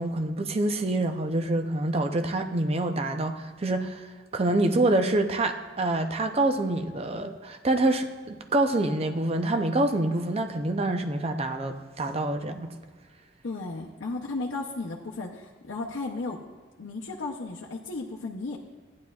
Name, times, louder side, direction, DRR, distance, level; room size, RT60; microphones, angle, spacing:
voice 1, 0.0-4.1 4.3-12.7, right 2 dB, 35° right, 6 dB, 0.6 m, -26 dB
voice 2, 13.4-16.4 16.8-18.6, left 3 dB, 80° left, -2 dB, 0.7 m, -34 dB
14.0 x 9.5 x 2.4 m, 1.4 s
head